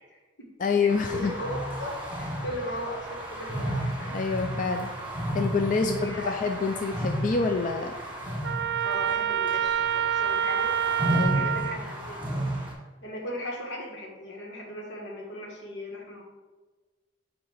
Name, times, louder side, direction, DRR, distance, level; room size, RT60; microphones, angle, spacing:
voice 1, 0.0-0.5 0.8-4.2 5.8-6.4 8.8-12.2 13.0-16.2, equal, 85° left, -1 dB, 1.6 m, -38 dB
voice 2, 0.6-1.3 4.1-4.9 5.3-8.0 11.1-11.5, left 4 dB, 45° left, 4 dB, 0.4 m, -27 dB
sound 1, 0.9-12.7, right 1 dB, 10° right, 1.7 m, -33 dB
Trumpet, 8.4-11.8, right 9 dB, 70° right, 0.5 m, -27 dB
8.5 x 2.9 x 5.7 m, 1.3 s
head